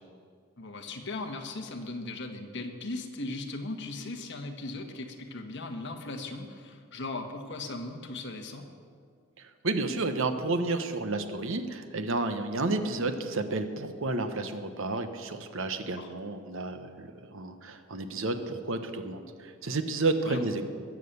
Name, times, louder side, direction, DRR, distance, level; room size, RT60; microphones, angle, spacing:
voice 1, 0.6-8.7 16.0-16.1 20.2-20.4, left 2 dB, 55° left, 4 dB, 1.5 m, -38 dB
voice 2, 9.4-20.6, right 2 dB, 60° right, 8 dB, 1.1 m, -31 dB
21.5 x 7.6 x 6.9 m, 2.1 s
head